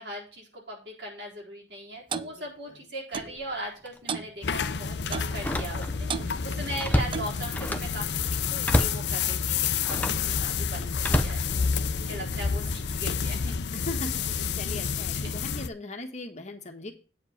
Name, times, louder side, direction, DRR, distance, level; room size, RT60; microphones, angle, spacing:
voice 1, 0.0-13.6 14.7-14.8 15.1-15.3, right 1 dB, 65° right, -2 dB, 4.1 m, -39 dB
Clock, 2.1-2.3 3.1-3.4 4.1-4.3 5.1-5.4 6.1-6.3 7.1-7.4, right 5 dB, 30° right, 0.4 m, -33 dB
Slam, 3.1-3.4 3.9-4.0 5.3-6.1 6.4-8.0 8.6-9.1 9.8-10.3 11.0-12.1 12.7-13.0, equal, 10° left, 0.7 m, -29 dB
sound 1, 4.4-15.7, left 6 dB, 70° left, 0.6 m, -29 dB
voice 2, 12.0-13.0 13.7-16.9, left 2 dB, 40° left, 5 dB, 1.4 m, -40 dB
8.8 x 4.6 x 7.2 m, 0.35 s
head